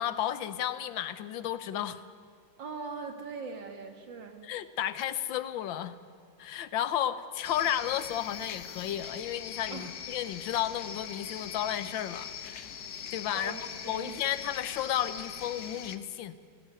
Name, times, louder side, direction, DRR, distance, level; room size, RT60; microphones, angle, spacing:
voice 1, 0.0-2.0 4.4-6.0 6.4-12.7 13.1-16.4, left 11 dB, 85° left, 14 dB, 1.6 m, -33 dB
voice 2, 2.6-4.5 9.7-9.9 13.3-14.2, right 4 dB, 75° right, 5 dB, 2.6 m, -41 dB
sound 1, 7.4-16.0, left 8 dB, 60° left, 1.4 m, -41 dB
18.0 x 17.0 x 9.1 m, 2.2 s
omnidirectional pair, 2.0 m